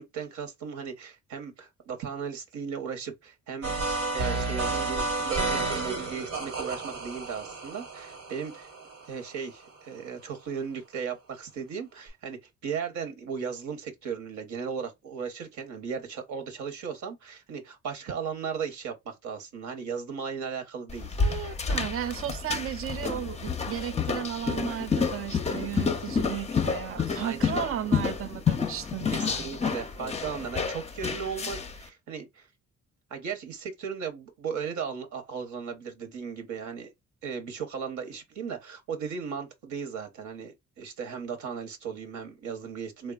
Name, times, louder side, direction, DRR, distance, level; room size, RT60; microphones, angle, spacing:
voice 1, 0.0-3.8 4.1-8.7 9.1-21.2 27.0-27.5 29.1-32.5 33.1-36.9 37.2-43.1, right 6 dB, 70° right, 0.9 m, -36 dB
sound 1, 3.6-9.4, right 3 dB, 85° right, 1.3 m, -31 dB
sound 2, 20.9-31.8, left 5 dB, 20° left, 0.5 m, -29 dB
voice 2, 21.2-29.5, right 11 dB, 50° right, 0.4 m, -35 dB
3.2 x 2.2 x 2.3 m
cardioid pair, 90°, 30 cm